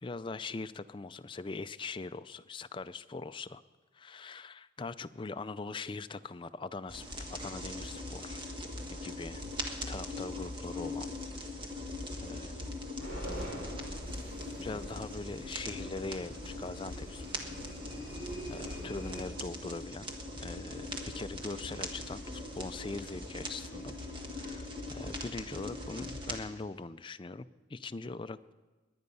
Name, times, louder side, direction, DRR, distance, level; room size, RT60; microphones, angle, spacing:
voice 1, 0.0-3.6 3.9-8.4 8.9-11.1 12.2-12.6 14.6-17.2 18.2-20.1 20.4-24.0 24.3-28.5, left 3 dB, 25° left, 12 dB, 0.4 m, -42 dB
sound 1, 6.9-26.4, left 1 dB, 25° right, 1.6 m, -41 dB
sound 2, 13.0-19.2, equal, 50° right, 5.1 m, -43 dB
22.0 x 9.7 x 5.5 m, 1.3 s
head